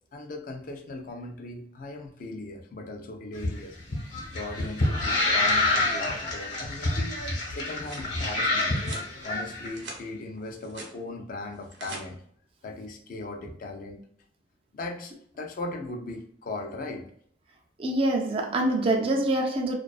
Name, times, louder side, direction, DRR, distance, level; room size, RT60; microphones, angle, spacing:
voice 1, 0.1-3.8 4.3-7.2 7.6-8.8 9.2-12.2 12.6-14.0 14.7-17.0, left 2 dB, 50° left, 0.4 m, -38 dB
sound 1, 3.3-9.7, left 2 dB, 75° left, 0.9 m, -27 dB
sound 2, 7.7-8.1 8.8-9.1 9.5-10.0 10.4-10.9 11.5-12.0, right 3 dB, 90° right, 0.7 m, -43 dB
voice 2, 17.8-19.8, right 1 dB, 30° right, 0.3 m, -25 dB
2.4 x 2.3 x 2.3 m
head